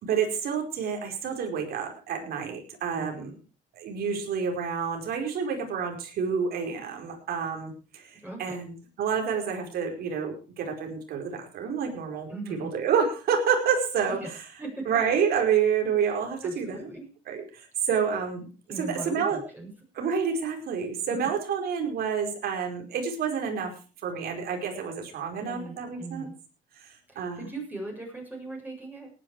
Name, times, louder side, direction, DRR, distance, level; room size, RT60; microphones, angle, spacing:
voice 1, 0.0-3.3 3.7-12.3 12.6-14.4 14.8-16.9 17.3-18.5 18.8-19.4 20.0-23.7 24.0-26.3 26.7-27.5, right 6 dB, 65° right, 3 dB, 4.9 m, -29 dB
voice 2, 2.9-3.4 8.2-8.6 12.3-12.7 14.2-14.3 14.6-14.9 16.4-17.0 18.7-19.7 21.1-21.3 25.4-26.3 27.1-29.1, right 2 dB, 10° right, 0 dB, 7.4 m, -39 dB
18.5 x 10.5 x 4.8 m, 0.35 s
cardioid pair, 110°, 17 cm